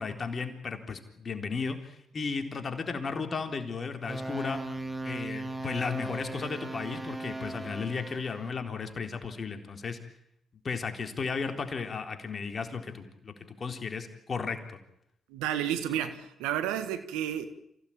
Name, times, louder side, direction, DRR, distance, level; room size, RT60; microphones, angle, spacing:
voice 1, 0.0-4.6 5.0-10.0 10.6-14.8, left 5 dB, 45° left, 6 dB, 3.8 m, -34 dB
sound 1, 4.1-8.5, right 2 dB, 20° right, 3.2 m, -38 dB
voice 2, 15.3-17.5, right 10 dB, 85° right, 11 dB, 1.6 m, -31 dB
27.0 x 16.5 x 8.9 m, 0.78 s
hypercardioid pair, 50°, 0 cm